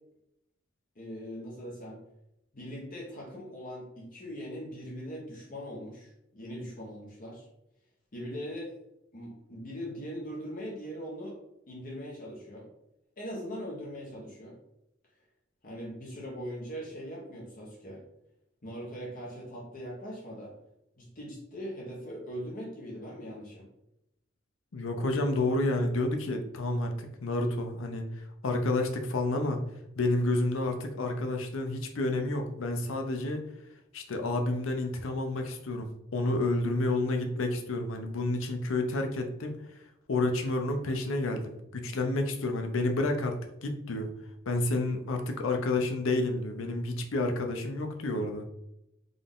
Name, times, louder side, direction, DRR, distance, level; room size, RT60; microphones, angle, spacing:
voice 1, 0.9-2.0 2.5-7.5 8.1-8.7 9.1-11.4 11.7-12.7 13.2-14.6 15.6-18.0 18.6-20.5 21.0-23.7, equal, 45° left, -4 dB, 1.0 m, -41 dB
voice 2, 24.7-29.6 30.0-33.4 33.9-39.6 40.1-44.1 44.5-48.4, left 2 dB, 75° left, 4 dB, 0.6 m, -30 dB
3.8 x 2.5 x 3.6 m, 0.85 s
head